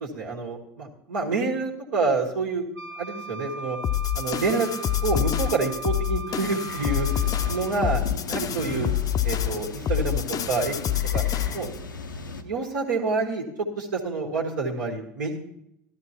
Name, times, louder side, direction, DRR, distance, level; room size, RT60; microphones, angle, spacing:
voice 1, 0.0-2.6 3.0-3.8 4.2-7.1 7.4-8.0 8.3-8.9 9.2-10.7 11.1-11.2 11.5-11.7 12.4-13.4 13.8-15.4, right 3 dB, 75° right, 0 dB, 1.7 m, -27 dB
Wind instrument woodwind instrument, 2.7-7.9, right 3 dB, 40° right, 1.5 m, -38 dB
sound 1, 3.8-11.8, left 11 dB, 35° left, 0.5 m, -27 dB
sound 2, 6.7-12.4, left 3 dB, 90° left, 0.6 m, -36 dB
13.0 x 12.5 x 2.9 m, 0.78 s
figure-of-eight pair, 70°, 10 cm